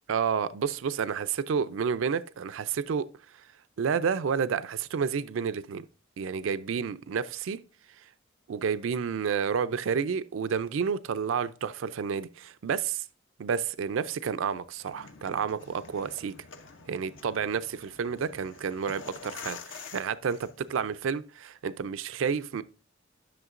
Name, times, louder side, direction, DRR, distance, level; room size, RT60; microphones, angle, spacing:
voice 1, 0.1-3.1 3.8-5.9 6.2-7.6 8.5-13.0 13.4-16.4 16.9-22.6, right 6 dB, 85° right, 0.4 m, -30 dB
sound 1, 14.8-20.9, left 5 dB, 70° left, 0.7 m, -47 dB
11.0 x 6.3 x 2.5 m
head